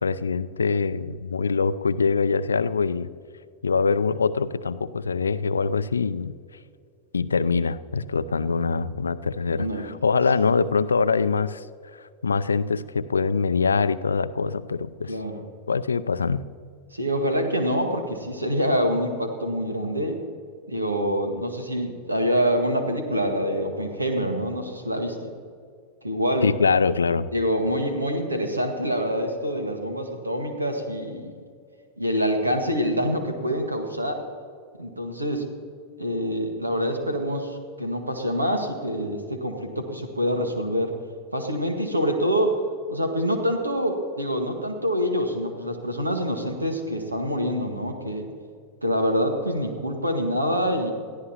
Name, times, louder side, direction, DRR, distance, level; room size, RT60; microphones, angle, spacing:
voice 1, 0.0-3.1 3.6-6.4 7.1-11.7 12.0-15.1 15.7-16.4 26.4-27.3, left 5 dB, 75° left, 15 dB, 0.4 m, -24 dB
voice 2, 9.5-9.9 15.1-15.4 16.9-20.2 20.7-25.3 26.0-26.5 27.3-31.3 32.0-34.2 34.8-35.4 36.0-40.9 41.3-42.6 42.9-48.3 48.8-50.9, equal, 80° right, 5 dB, 1.8 m, -26 dB
21.5 x 14.5 x 2.9 m, 2.2 s
figure-of-eight pair, 90°, 0 cm